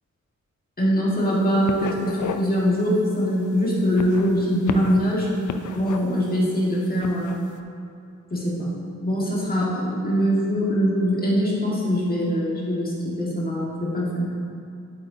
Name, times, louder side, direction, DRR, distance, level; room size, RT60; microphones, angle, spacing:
voice 1, 0.8-5.3 5.7-7.4 8.3-8.7 9.0-14.3, equal, 30° left, -6 dB, 1.6 m, -23 dB
Writing of a chalk board, 1.2-1.4 1.7-2.5 2.9-3.1 3.8-5.1 5.5-6.3 6.9-7.4, left 7 dB, 90° left, 0.5 m, -32 dB
8.5 x 7.8 x 2.7 m, 2.5 s
wide cardioid pair, 140°, 29 cm